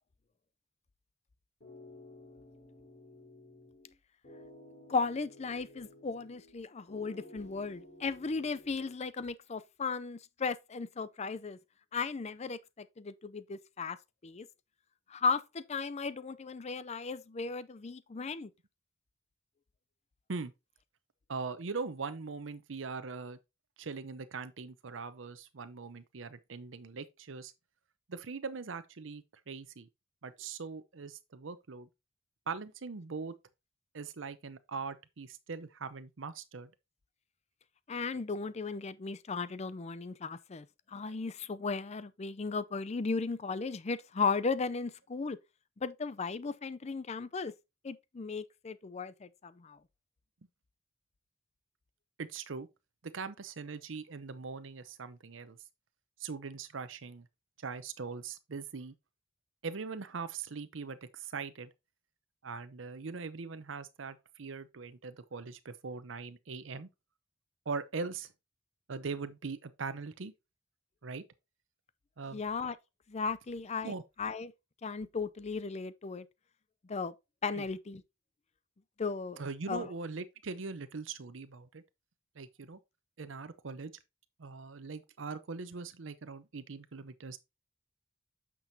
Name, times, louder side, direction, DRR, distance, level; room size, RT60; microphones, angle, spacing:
sound 1, 1.6-3.9 4.2-6.6 6.9-8.9, left 1 dB, 50° left, 4.1 m, -54 dB
voice 1, 4.9-11.6 11.9-14.0 14.2-14.5 15.1-18.5 37.9-45.4 45.8-47.5 47.8-49.8 72.3-72.8 73.1-73.9 74.2-74.5 74.8-76.3 76.9-77.1 77.4-78.0 79.0-79.9, left 4 dB, 35° left, 0.5 m, -36 dB
voice 2, 21.3-23.4 23.8-27.5 28.1-29.9 30.2-31.9 32.5-33.3 33.9-36.7 52.2-52.7 53.0-55.6 56.2-57.3 57.6-58.9 59.6-61.7 62.4-66.9 67.7-68.3 68.9-70.3 71.0-71.2 72.2-72.4 73.8-74.0 77.6-77.7 79.4-81.8 82.4-82.8 83.2-83.9 84.4-87.4, right 4 dB, 80° right, 0.7 m, -41 dB
9.0 x 6.1 x 2.7 m
head